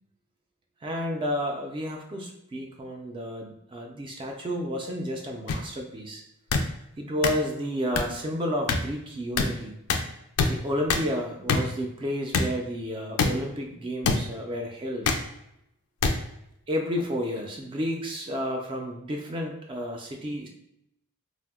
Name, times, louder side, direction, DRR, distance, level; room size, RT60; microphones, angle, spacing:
voice 1, 0.8-6.2 7.0-9.8 10.5-15.1 16.7-20.5, equal, 25° right, 1 dB, 0.3 m, -31 dB
sound 1, 5.5-5.6 6.5-6.6 7.2-7.3 8.0-8.1 8.7-8.8 9.4-9.5 9.9-10.0 10.4-10.5 10.9-11.0 11.5-11.6 12.3-12.5 13.2-13.3 14.0-14.2 15.0-15.2 16.0-16.1 17.0-17.1, left 4 dB, 85° left, 0.4 m, -23 dB
2.6 x 2.0 x 3.5 m, 0.79 s
head